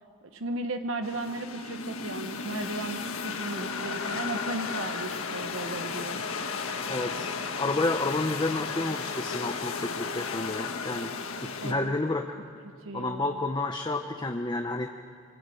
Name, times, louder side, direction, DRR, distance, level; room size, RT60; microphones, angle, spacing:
voice 1, 0.2-6.2 11.6-11.9 12.8-13.4, right 2 dB, 70° right, 7 dB, 1.0 m, -35 dB
sound 1, 1.0-11.7, left 5 dB, 85° left, 1.6 m, -34 dB
sound 2, 5.8-10.4, right 4 dB, 25° right, 1.2 m, -51 dB
voice 2, 6.9-7.3 7.6-11.1 11.4-12.4 12.9-15.0, left 2 dB, 20° left, 4 dB, 0.8 m, -30 dB
25.0 x 20.5 x 8.5 m, 2.7 s
head